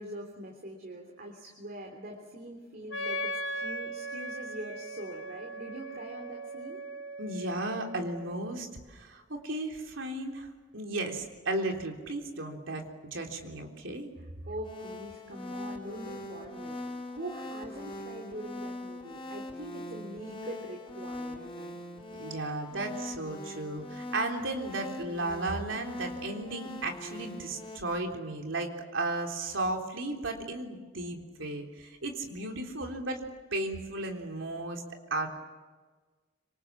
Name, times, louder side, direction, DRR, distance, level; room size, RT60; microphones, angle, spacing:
voice 1, 0.0-6.8 14.5-16.8 17.1-21.8, right 1 dB, 50° right, 2 dB, 3.4 m, -43 dB
Wind instrument woodwind instrument, 2.9-8.5, equal, 75° left, 1.9 m, -38 dB
voice 2, 7.2-14.1 22.1-33.2 33.5-34.8 35.1-35.3, right 2 dB, 80° right, 2 dB, 3.7 m, -35 dB
sound 1, 14.6-27.8, left 1 dB, 25° left, 4.7 m, -42 dB
26.0 x 26.0 x 7.3 m, 1.4 s
head